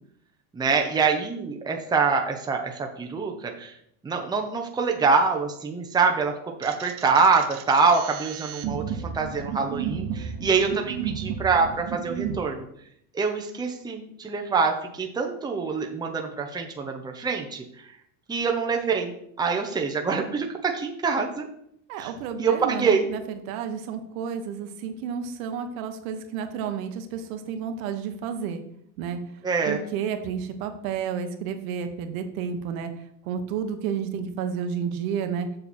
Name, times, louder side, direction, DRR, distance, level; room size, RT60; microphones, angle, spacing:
voice 1, 0.5-3.7 4.0-6.3 6.6-12.6 13.1-17.6 18.3-21.5 22.0-22.1 22.4-23.1 29.4-29.8, right 5 dB, 10° right, 2 dB, 0.8 m, -25 dB
sound 1, 6.6-12.4, right 8 dB, 60° right, 1.0 m, -33 dB
voice 2, 21.9-28.6 29.0-29.2 29.6-32.9 33.2-35.5, right 7 dB, 85° right, 6 dB, 1.4 m, -31 dB
7.0 x 6.6 x 4.4 m, 0.71 s
cardioid pair, 145°, 41 cm